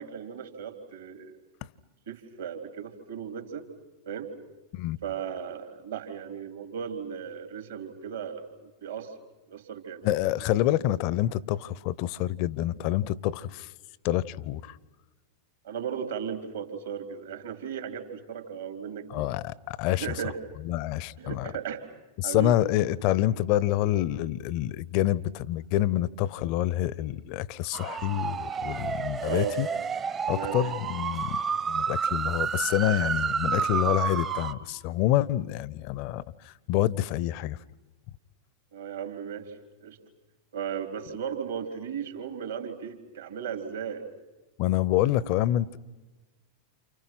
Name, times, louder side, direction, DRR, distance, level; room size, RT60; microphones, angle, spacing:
voice 1, 0.0-1.3 2.1-3.7 4.1-4.3 5.0-9.1 9.5-10.1 15.6-19.3 19.9-20.4 21.2-21.8 22.2-22.5 29.3-29.6 30.3-30.6 38.7-40.0 40.5-44.1, right 8 dB, 60° right, 3.8 m, -36 dB
voice 2, 10.0-13.7 14.0-14.8 19.1-20.2 20.6-21.5 22.2-29.7 30.3-31.4 31.7-37.6 44.6-45.8, left 14 dB, 45° left, 0.9 m, -27 dB
sound 1, 27.7-34.5, right 6 dB, 25° right, 1.2 m, -30 dB
29.5 x 29.5 x 6.0 m
figure-of-eight pair, 90°, 0 cm